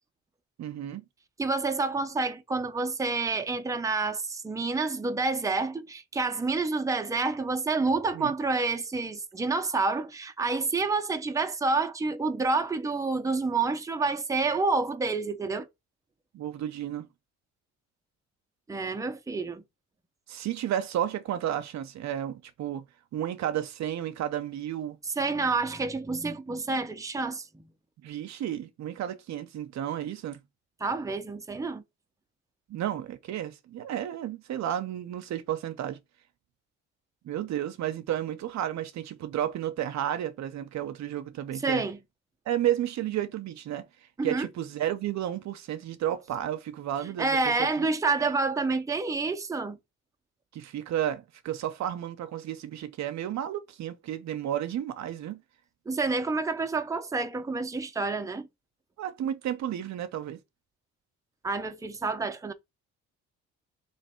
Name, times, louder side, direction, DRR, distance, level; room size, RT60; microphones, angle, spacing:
voice 1, 0.6-1.0 8.1-8.3 16.3-17.1 20.3-22.9 23.1-25.0 28.0-30.4 32.7-36.0 37.2-41.9 42.5-43.9 44.2-47.9 50.5-55.4 59.0-60.4, right 11 dB, 65° right, 0.6 m, -32 dB
voice 2, 1.4-15.7 18.7-19.6 25.2-27.6 30.8-31.8 41.6-42.0 44.2-44.5 47.2-49.8 55.9-58.5 61.4-62.5, right 3 dB, 10° right, 0.6 m, -28 dB
3.2 x 3.0 x 4.3 m
cardioid pair, 90°, 30 cm